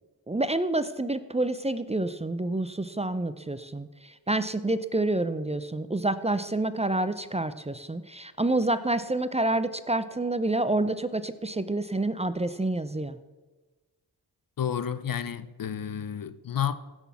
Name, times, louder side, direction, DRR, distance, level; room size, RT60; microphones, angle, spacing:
voice 1, 0.3-13.2, right 2 dB, 15° right, 0.6 m, -28 dB
voice 2, 14.6-16.8, left 9 dB, 55° left, 0.8 m, -31 dB
15.5 x 6.3 x 7.1 m
cardioid pair, 70°, 41 cm